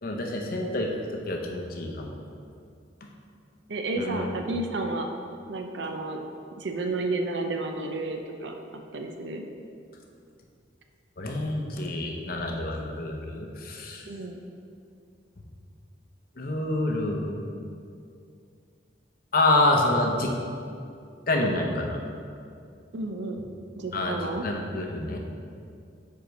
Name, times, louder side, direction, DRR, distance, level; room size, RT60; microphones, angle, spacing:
voice 1, 0.0-0.9 1.3-2.1 4.0-4.3 11.2-14.0 16.4-17.4 19.3-20.3 21.3-22.0 23.9-25.2, left 2 dB, 50° left, 1 dB, 0.7 m, -27 dB
voice 2, 3.7-5.1 5.5-6.2 6.6-8.5 8.9-9.4 14.1-14.4 22.9-23.4 23.8-24.4, right 2 dB, 70° right, 4 dB, 0.6 m, -31 dB
5.0 x 4.6 x 5.2 m, 2.4 s
head